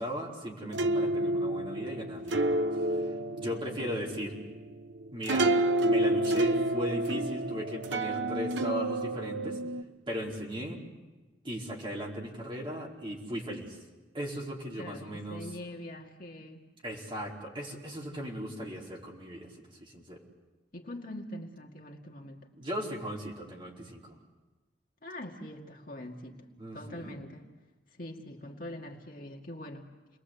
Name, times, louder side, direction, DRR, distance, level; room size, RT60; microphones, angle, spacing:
voice 1, 0.0-4.3 5.1-5.5 5.8-9.6 10.1-10.8 11.4-13.8 14.1-15.5 16.8-19.5 19.8-20.2 22.6-24.2 26.6-27.2, equal, 30° right, -2 dB, 4.7 m, -37 dB
sound 1, 0.7-9.8, right 1 dB, 80° right, 1.1 m, -29 dB
voice 2, 14.8-16.6 20.7-22.4 25.0-26.5 26.7-27.5 28.0-30.2, left 1 dB, 50° left, 1 dB, 2.3 m, -43 dB
29.0 x 21.5 x 8.3 m, 1.2 s
head